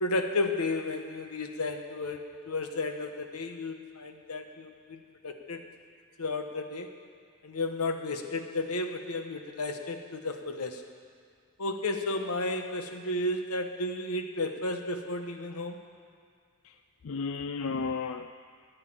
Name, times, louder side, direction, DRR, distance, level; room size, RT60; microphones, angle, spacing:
voice 1, 0.0-5.6 6.2-6.9 7.4-10.8 11.6-15.8, left 2 dB, 90° left, 6 dB, 1.1 m, -33 dB
voice 2, 16.6-18.3, left 4 dB, 65° left, 9 dB, 0.4 m, -34 dB
10.0 x 9.4 x 8.8 m, 2.2 s
head